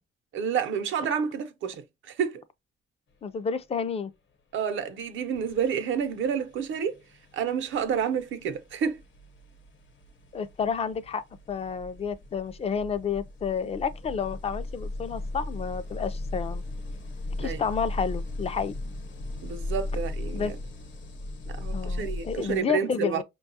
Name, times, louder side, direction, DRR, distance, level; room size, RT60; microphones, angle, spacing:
voice 1, 0.3-2.4 4.5-7.0 7.3-9.0 17.4-17.6 19.4-20.5 21.5-23.2, right 7 dB, 80° right, 0.7 m, -29 dB
voice 2, 3.2-4.1 10.3-16.6 17.4-18.7 20.3-20.5 21.7-23.2, left 6 dB, 30° left, 0.4 m, -30 dB
sound 1, 4.8-5.0 5.3-22.6, left 2 dB, 70° left, 0.9 m, -37 dB
5.3 x 2.3 x 2.6 m
cardioid pair, 140°, 20 cm